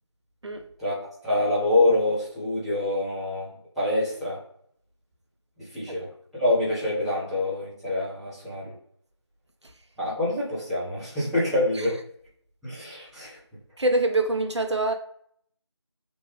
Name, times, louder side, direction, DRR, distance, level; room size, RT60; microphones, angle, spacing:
voice 1, 0.8-3.5 3.7-4.4 5.6-6.1 6.3-8.7 10.0-12.0 12.6-13.4, left 2 dB, ahead, 0.5 m, -26 dB
voice 2, 13.8-14.9, right 2 dB, 70° right, 0.6 m, -24 dB
3.0 x 2.2 x 3.1 m
figure-of-eight pair, 175°, 15 cm